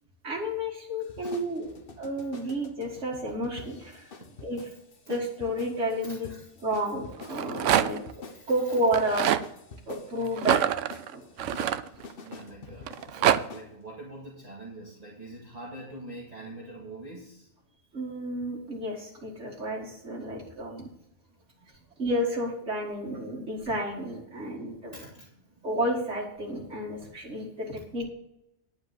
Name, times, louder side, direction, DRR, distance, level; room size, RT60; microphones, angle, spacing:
voice 1, 0.2-1.7 2.0-4.1 4.4-4.6 5.1-6.3 6.6-8.0 8.5-9.2 9.9-10.8 11.1-11.3 17.9-20.9 22.0-24.9 25.6-28.1, equal, 70° right, -4 dB, 2.2 m, -31 dB
sound 1, 1.0-13.7, left 4 dB, 50° left, 1.1 m, -47 dB
voice 2, 1.3-1.8 2.4-2.5 4.3-4.7 6.0-6.5 8.3-8.5 12.2-17.5 21.6-21.9 24.9-25.6, right 2 dB, 35° right, -5 dB, 2.2 m, -45 dB
Rattle, 7.2-8.1 8.9-9.5 10.4-12.3 12.9-13.4, right 11 dB, 90° right, 0.9 m, -25 dB
10.5 x 5.1 x 8.0 m, 0.81 s
omnidirectional pair, 1.2 m